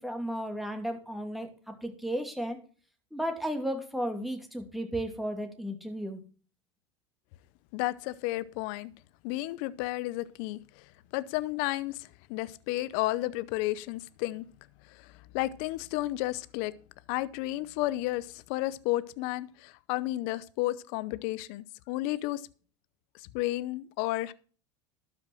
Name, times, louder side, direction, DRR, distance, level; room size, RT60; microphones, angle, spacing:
voice 1, 0.0-1.5 1.8-2.6 3.1-6.2, equal, ahead, 2.7 m, -34 dB
voice 2, 7.7-8.9 9.2-10.6 11.1-14.4 15.3-16.7 17.1-22.4 23.3-24.3, left 17 dB, 65° left, 0.7 m, -32 dB
12.0 x 6.1 x 6.1 m
hypercardioid pair, 90°, 15 cm